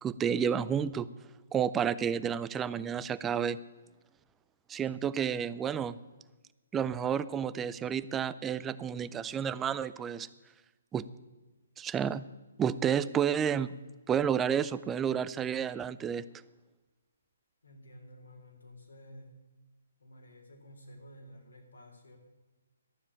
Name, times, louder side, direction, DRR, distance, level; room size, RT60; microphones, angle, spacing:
voice 1, 0.0-1.1 1.5-3.6 4.7-6.0 6.7-10.3 10.9-11.1 11.8-12.2 12.6-13.7 14.1-16.2, right 8 dB, 15° right, 16 dB, 0.4 m, -30 dB
voice 2, 17.6-19.3 20.0-22.2, equal, 80° left, 1 dB, 3.4 m, -52 dB
12.0 x 7.3 x 8.9 m, 1.2 s
figure-of-eight pair, 135°, 0 cm